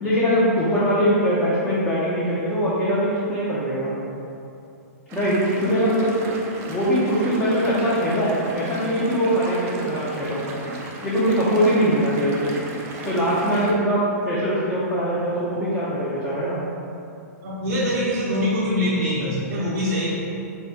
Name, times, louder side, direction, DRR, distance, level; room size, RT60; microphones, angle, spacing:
voice 1, 0.0-3.9 5.1-6.2 6.6-10.4 11.0-12.6 13.0-16.6, equal, 15° left, -10 dB, 0.6 m, -22 dB
sound 1, 5.1-13.7, right 2 dB, 30° right, 0.4 m, -36 dB
voice 2, 17.4-20.1, equal, 60° right, -7 dB, 0.7 m, -23 dB
3.4 x 2.7 x 3.4 m, 2.6 s
hypercardioid pair, 140°, 9 cm